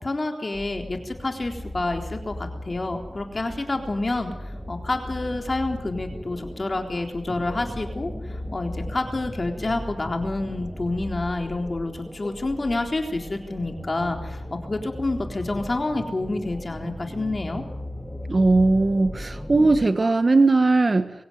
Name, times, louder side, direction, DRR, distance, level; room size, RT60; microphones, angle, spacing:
voice 1, 0.0-4.3 4.7-17.6, left 2 dB, 30° left, 4 dB, 3.9 m, -28 dB
sound 1, 0.5-19.9, left 1 dB, 5° left, 4.3 m, -37 dB
voice 2, 18.3-21.1, right 3 dB, 35° right, 10 dB, 1.5 m, -19 dB
23.5 x 16.5 x 9.4 m, 0.86 s
wide cardioid pair, 85°, 0 cm